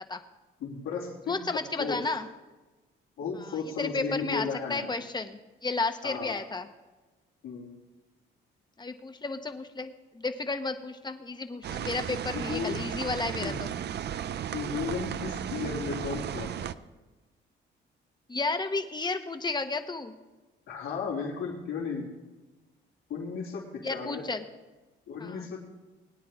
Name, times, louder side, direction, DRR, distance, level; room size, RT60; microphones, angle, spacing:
voice 1, 0.6-1.4 1.8-2.0 3.2-4.9 6.0-6.4 7.4-7.7 12.3-12.9 13.4-13.6 14.5-16.7 20.7-22.1 23.1-24.2 25.1-25.7, left 5 dB, 80° left, -9 dB, 3.4 m, -34 dB
voice 2, 1.3-2.3 3.4-6.7 8.8-13.7 18.3-20.1 23.8-24.4 25.2-25.5, left 3 dB, 20° left, 8 dB, 1.1 m, -33 dB
sound 1, 11.6-16.7, right 9 dB, 60° right, 0.6 m, -35 dB
21.5 x 9.4 x 3.6 m, 1.2 s
cardioid pair, 90°, 20 cm